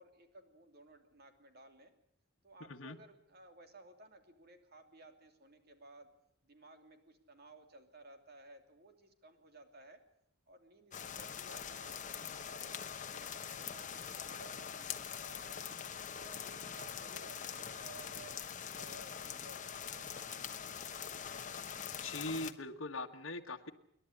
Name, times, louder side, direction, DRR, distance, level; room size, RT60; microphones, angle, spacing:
voice 1, 0.0-1.9 2.4-6.1 6.4-10.0 10.5-15.5 16.1-18.3 18.7-20.8, right 2 dB, 50° right, 6 dB, 2.9 m, -58 dB
sound 1, 10.9-22.5, left 8 dB, 40° left, 1.1 m, -44 dB
voice 2, 22.0-23.7, left 2 dB, 70° left, 3 dB, 1.5 m, -41 dB
27.5 x 11.5 x 9.8 m, 0.74 s
head